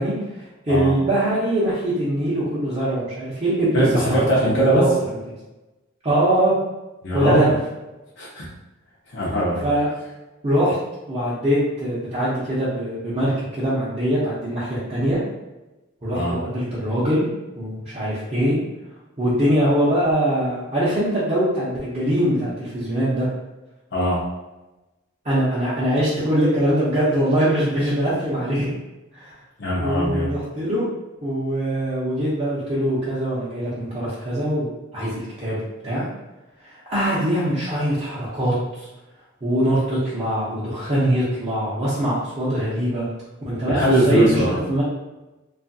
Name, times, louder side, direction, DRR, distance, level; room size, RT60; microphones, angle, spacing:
voice 1, 0.0-4.9 6.0-6.6 7.1-7.5 9.6-9.9 10.4-10.8 11.1-15.2 16.0-17.3 17.5-18.6 19.2-23.3 25.2-28.7 29.1-29.3 29.8-30.8 31.2-35.6 35.8-36.1 36.6-38.9 39.4-43.1 43.4-44.8, right 1 dB, 30° right, -11 dB, 0.6 m, -22 dB
voice 2, 3.7-4.9 7.0-7.5 8.2-8.5 9.1-9.7 16.1-16.4 23.9-24.2 29.6-30.3 43.7-44.6, right 1 dB, 60° left, -6 dB, 0.6 m, -20 dB
2.7 x 2.4 x 2.6 m, 1.0 s
head